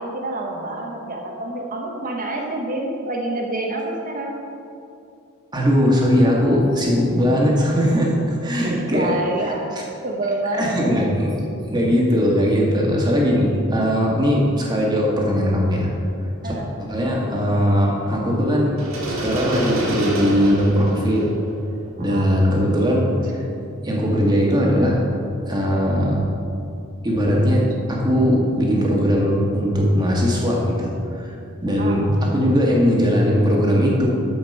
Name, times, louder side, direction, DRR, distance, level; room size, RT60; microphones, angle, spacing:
voice 1, 0.0-4.4 8.6-9.7 10.0-10.7 16.4-16.7 22.0-22.3 31.8-32.0, right 2 dB, 40° right, 0 dB, 1.0 m, -27 dB
voice 2, 5.5-9.1 10.5-11.3 11.7-15.9 16.4-16.5 16.9-18.8 19.1-21.3 22.0-23.4 23.8-25.0 25.5-26.2 27.0-31.3 31.6-34.1, equal, 20° right, -3 dB, 1.7 m, -19 dB
sound 1, 18.8-22.7, right 1 dB, 70° right, 2.1 m, -28 dB
12.5 x 5.2 x 5.4 m, 2.5 s
head